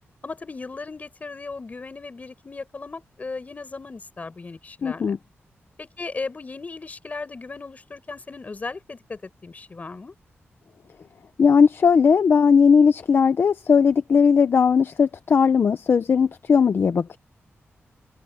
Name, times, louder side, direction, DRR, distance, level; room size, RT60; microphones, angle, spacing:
voice 1, 0.2-5.1 5.8-10.1, left 3 dB, 35° left, 6.5 m, -36 dB
voice 2, 4.8-5.2 11.4-17.2, left 6 dB, 55° left, 0.7 m, -18 dB
wide cardioid pair, 135°, 5 cm